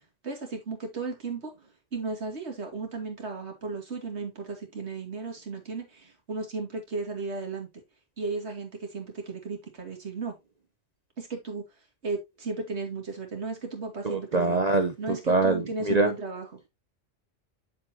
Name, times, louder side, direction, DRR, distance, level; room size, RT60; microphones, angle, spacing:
voice 1, 0.2-1.5 1.9-7.7 8.2-10.3 11.2-11.6 12.0-14.6 15.0-16.6, right 4 dB, 60° right, 2.6 m, -35 dB
voice 2, 14.0-16.1, right 3 dB, 40° right, 0.8 m, -24 dB
8.1 x 7.2 x 2.8 m
omnidirectional pair, 1.3 m